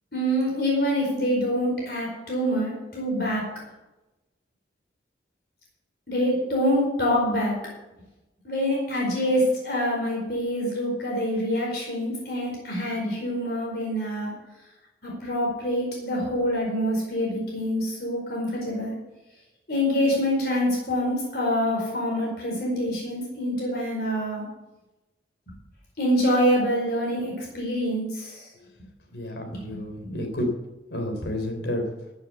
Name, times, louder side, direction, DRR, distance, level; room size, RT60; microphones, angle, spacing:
voice 1, 0.1-3.5 6.1-7.5 8.4-14.3 15.0-18.9 19.7-24.4 26.0-28.5 29.5-30.1, equal, 60° left, -2 dB, 4.7 m, -26 dB
voice 2, 29.1-30.5 30.9-31.9, left 1 dB, 80° left, 4 dB, 3.5 m, -30 dB
14.5 x 7.4 x 8.2 m, 1.0 s
head